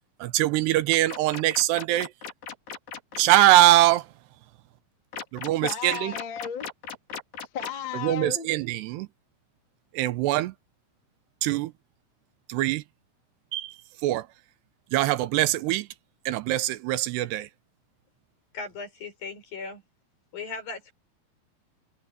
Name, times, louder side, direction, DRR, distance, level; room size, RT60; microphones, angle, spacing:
voice 1, 0.2-2.1 3.2-4.0 5.3-6.1 8.0-9.1 10.0-10.5 11.4-11.7 12.5-12.8 13.5-13.7 14.0-14.2 14.9-15.9 16.3-17.5, right 15 dB, 85° right, 3.0 m, -22 dB
sound 1, 0.9-3.2 5.1-7.9, left 6 dB, 75° left, 5.7 m, -37 dB
voice 2, 5.6-6.7 7.5-8.5, left 8 dB, 35° left, 2.6 m, -34 dB
voice 3, 18.5-19.8 20.3-20.9, left 4 dB, 60° left, 7.8 m, -37 dB
omnidirectional pair, 4.7 m